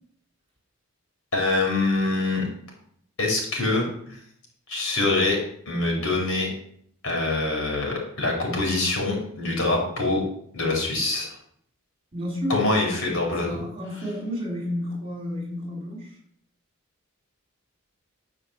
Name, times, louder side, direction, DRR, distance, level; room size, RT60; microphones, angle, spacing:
voice 1, 1.3-2.4 3.2-4.2 4.7-5.4 5.7-6.5 7.0-10.2 10.5-11.3 12.5-13.5, left 2 dB, 70° left, 0 dB, 4.8 m, -24 dB
voice 2, 12.1-12.5 13.4-16.2, left 1 dB, 25° right, -2 dB, 4.3 m, -31 dB
11.5 x 6.5 x 7.2 m, 0.67 s
head